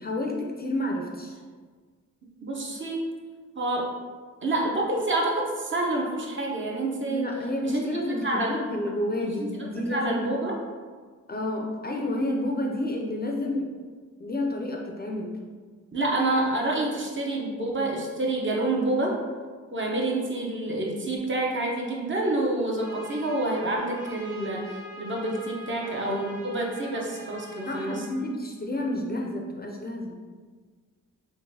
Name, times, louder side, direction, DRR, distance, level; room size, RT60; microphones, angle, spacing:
voice 1, 0.0-1.4 7.1-10.3 11.3-13.7 14.2-15.3 25.8-26.2 27.7-30.2, left 1 dB, 35° left, 0 dB, 0.4 m, -30 dB
voice 2, 2.4-3.0 3.6-3.9 4.4-7.3 7.6-8.7 9.4-10.5 15.9-19.2 19.7-28.0, right 2 dB, 40° right, -1 dB, 0.6 m, -28 dB
Trumpet, 22.8-28.1, equal, 80° right, 1.3 m, -43 dB
3.8 x 3.0 x 2.6 m, 1.5 s
wide cardioid pair, 105°, 30 cm